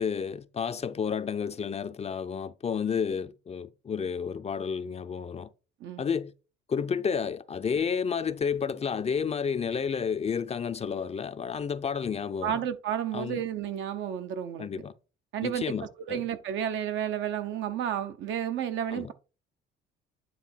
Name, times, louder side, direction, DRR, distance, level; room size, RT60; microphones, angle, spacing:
voice 1, 0.0-5.5 6.0-6.3 6.7-12.6 13.1-13.4 14.6-14.9 15.4-16.3 18.9-19.1, left 6 dB, 30° left, 0.6 m, -31 dB
voice 2, 12.4-14.7 15.3-15.6 16.1-19.1, right 9 dB, 65° right, 0.9 m, -31 dB
9.4 x 3.2 x 4.5 m
supercardioid pair, 75°, 20 cm